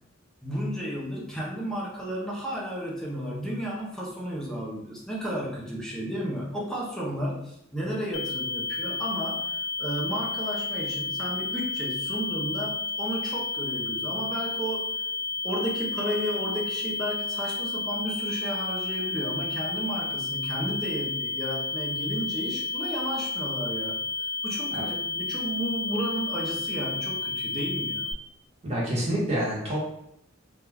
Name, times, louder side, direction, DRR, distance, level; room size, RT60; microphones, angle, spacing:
voice 1, 0.4-15.0 15.4-28.1, equal, 5° left, -4 dB, 0.4 m, -33 dB
sound 1, 8.1-28.1, left 3 dB, 70° left, 0.4 m, -31 dB
voice 2, 28.6-29.8, right 1 dB, 30° right, -6 dB, 0.9 m, -27 dB
2.2 x 2.1 x 3.2 m, 0.77 s
head